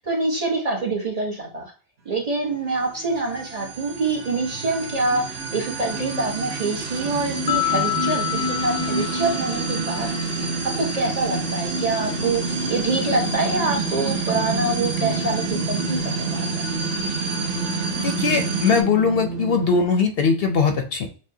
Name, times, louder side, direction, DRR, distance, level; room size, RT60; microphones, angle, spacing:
voice 1, 0.0-1.7 2.0-10.1 10.8-16.7, right 3 dB, 35° right, -1 dB, 0.9 m, -26 dB
sound 1, 2.5-19.8, right 4 dB, 85° right, 0.9 m, -32 dB
sound 2, 3.1-18.8, right 3 dB, 60° right, 1.0 m, -28 dB
sound 3, 7.5-10.6, left 15 dB, 90° left, 0.9 m, -28 dB
voice 2, 17.9-21.1, left 5 dB, 65° left, 5 dB, 0.7 m, -20 dB
6.0 x 2.1 x 2.7 m, 0.38 s
omnidirectional pair, 1.2 m